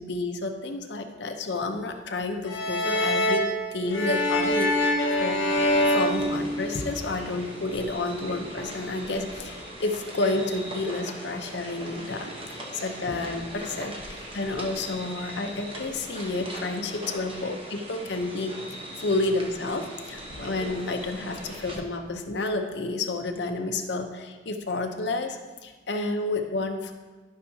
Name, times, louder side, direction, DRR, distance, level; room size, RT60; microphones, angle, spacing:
voice 1, 0.0-3.5 3.7-5.4 5.9-18.5 19.0-26.9, left 2 dB, 65° left, 5 dB, 0.7 m, -30 dB
sound 1, 2.5-7.1, left 1 dB, 90° left, 1.2 m, -25 dB
sound 2, 5.5-21.8, right 1 dB, 30° right, 1.0 m, -40 dB
12.5 x 5.6 x 2.8 m, 1.3 s
head